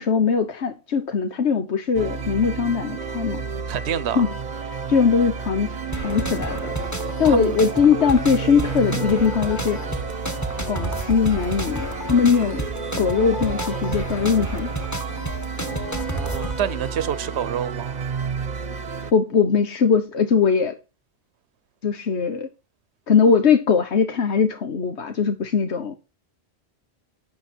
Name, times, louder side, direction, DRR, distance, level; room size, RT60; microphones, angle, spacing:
voice 1, 0.0-3.4 4.1-4.3 4.9-5.8 6.0-6.7 7.2-9.9 10.7-12.6 13.0-14.7 19.1-20.8 21.8-22.5 23.1-26.0, left 6 dB, 90° left, 1.4 m, -20 dB
sound 1, 1.9-19.1, right 5 dB, 45° right, 0.9 m, -31 dB
voice 2, 3.7-4.2 7.2-7.6 16.0-18.0, right 9 dB, 80° right, 1.0 m, -28 dB
sound 2, 5.9-16.6, right 1 dB, 15° left, 1.7 m, -31 dB
12.0 x 8.7 x 4.4 m
omnidirectional pair, 1.1 m